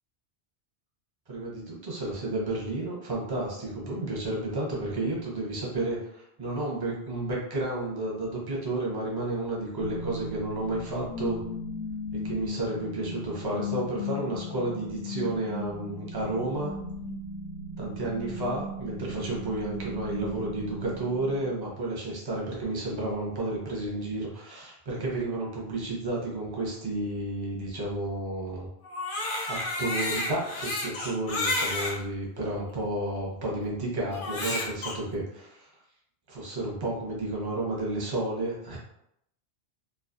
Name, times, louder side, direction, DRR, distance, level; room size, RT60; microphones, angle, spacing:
voice 1, 1.3-11.4 12.1-16.7 17.8-28.7 29.5-35.7 36.3-38.8, right 2 dB, 30° right, -3 dB, 0.5 m, -31 dB
sound 1, 9.8-21.8, left 2 dB, 90° left, 0.8 m, -37 dB
Crying sobbing, 28.8-32.0 32.7-32.8 34.1-34.9, left 2 dB, 60° left, 0.6 m, -31 dB
2.3 x 2.2 x 2.5 m, 0.77 s
omnidirectional pair, 1.0 m